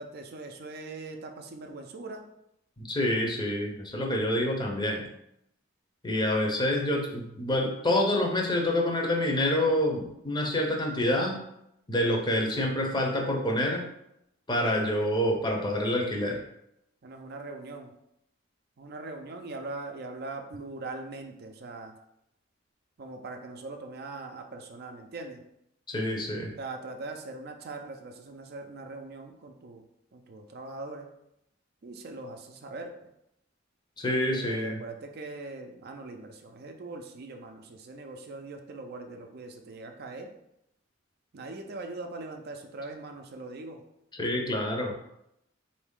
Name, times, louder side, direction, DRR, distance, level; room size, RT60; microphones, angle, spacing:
voice 1, 0.0-2.3 17.0-17.9 18.8-21.9 23.0-25.4 26.6-29.8 30.1-31.1 31.8-33.1 34.1-40.3 41.3-43.8, right 3 dB, 50° right, 4 dB, 0.5 m, -41 dB
voice 2, 2.8-5.1 6.0-11.4 11.9-13.9 14.5-16.4 25.9-26.5 34.0-34.8 44.2-44.9, left 1 dB, 20° left, 1 dB, 0.6 m, -27 dB
4.1 x 2.7 x 3.6 m, 0.81 s
head